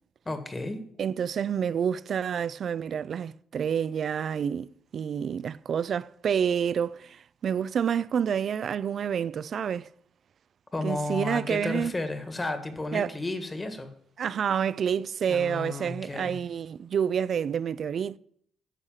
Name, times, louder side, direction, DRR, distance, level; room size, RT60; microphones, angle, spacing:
voice 1, 0.2-0.8 10.7-13.9 15.3-16.4, left 2 dB, 20° left, 1.6 m, -33 dB
voice 2, 1.0-9.9 10.8-11.9 12.9-13.2 14.2-18.2, right 8 dB, 55° right, 0.4 m, -28 dB
9.9 x 6.5 x 7.2 m
cardioid pair, 90°, 0 cm